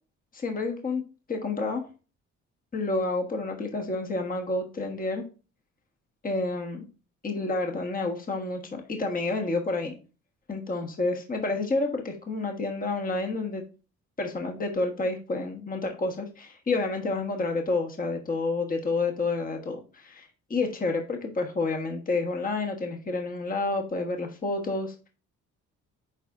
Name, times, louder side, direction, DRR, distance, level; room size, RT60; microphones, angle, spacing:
voice 1, 0.3-1.0 1.3-1.8 2.7-5.2 6.2-6.8 7.2-10.0 10.5-13.6 14.2-25.1, left 3 dB, 30° left, 2 dB, 1.3 m, -29 dB
10.0 x 4.1 x 2.5 m, 0.34 s
cardioid pair, 90°, 30 cm